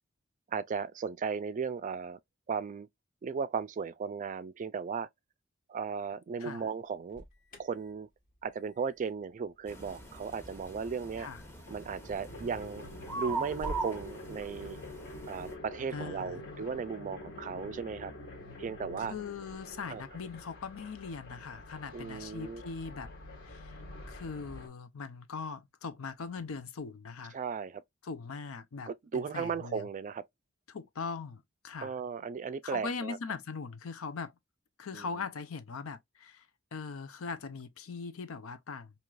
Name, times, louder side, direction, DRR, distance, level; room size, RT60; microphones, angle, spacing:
voice 1, 0.5-2.2 2.5-2.9 3.2-5.1 5.7-7.2 7.6-8.1 8.4-11.3 11.7-12.9 13.2-14.8 15.3-18.1 18.6-19.1 19.9-20.0 21.9-22.6 27.3-27.8 28.9-30.2 31.8-33.2 34.9-35.3, right 6 dB, 40° right, 0.3 m, -36 dB
Alarm, 6.9-13.9, equal, 45° left, 1.2 m, -51 dB
sound 1, 9.7-10.9 11.2-24.7, left 2 dB, 60° left, 1.5 m, -47 dB
sound 2, 9.7-15.5, right 3 dB, 10° left, 0.9 m, -41 dB
voice 2, 15.9-16.4 19.1-23.1 23.4-23.7 24.1-27.4 28.0-29.9 30.7-31.9 32.6-34.3 34.8-36.5 36.7-38.9, left 5 dB, 85° left, 0.6 m, -40 dB
4.6 x 2.8 x 2.4 m
head